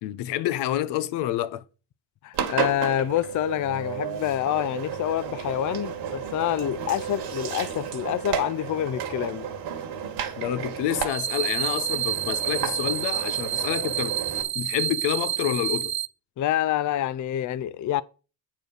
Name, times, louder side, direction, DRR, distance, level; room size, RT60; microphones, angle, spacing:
voice 1, 0.0-1.6 10.4-14.2 14.5-15.9, left 12 dB, 80° left, 1.0 m, -28 dB
voice 2, 2.2-9.5 16.4-18.0, left 11 dB, 45° left, 0.6 m, -27 dB
Engine, 2.3-14.4, right 8 dB, 75° right, 2.0 m, -33 dB
sound 1, 11.1-16.1, right 11 dB, 45° right, 0.6 m, -28 dB
9.0 x 4.5 x 6.6 m
supercardioid pair, 85°, 41 cm